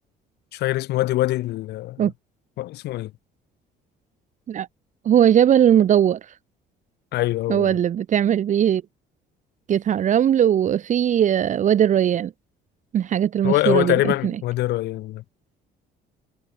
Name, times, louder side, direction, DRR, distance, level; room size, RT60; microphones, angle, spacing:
voice 1, 0.5-2.1 2.6-3.1 7.1-7.8 13.4-15.2, left 16 dB, 80° left, 4.4 m, -24 dB
voice 2, 5.0-6.3 7.5-8.8 9.7-12.3 12.9-14.1, right 10 dB, 45° right, 1.1 m, -19 dB
cardioid pair, 110°, 17 cm